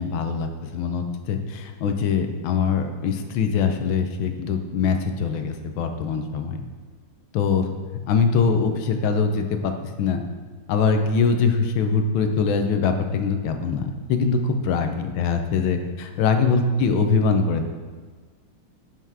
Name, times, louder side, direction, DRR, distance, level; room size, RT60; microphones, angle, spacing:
voice 1, 0.0-6.6 7.3-9.7 10.0-10.2 10.7-17.7, left 5 dB, 85° left, 6 dB, 1.5 m, -23 dB
6.0 x 5.6 x 4.7 m, 1.5 s
omnidirectional pair, 2.1 m